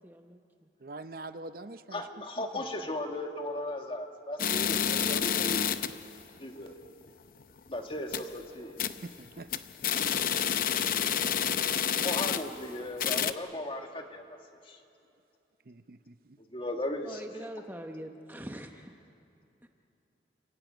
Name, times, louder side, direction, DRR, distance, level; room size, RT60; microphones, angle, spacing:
voice 1, 0.0-0.7 17.0-19.0 19.6-19.7, right 1 dB, 10° right, 4 dB, 0.8 m, -44 dB
voice 2, 0.8-2.1 2.4-2.7 9.0-9.6 15.7-16.4, right 2 dB, 55° right, 11 dB, 0.7 m, -44 dB
voice 3, 1.9-5.7 6.4-6.8 7.7-8.8 12.0-14.4 14.7-14.8 16.5-17.2, left 1 dB, 30° left, 4 dB, 1.8 m, -36 dB
sound 1, 4.4-6.0 6.4-6.5 6.9-7.0 7.4-7.6 7.9-8.4 8.8-9.1 9.4-12.7 13.0-13.3, left 8 dB, 50° left, 0.7 m, -29 dB
29.5 x 15.5 x 9.1 m, 2.7 s
head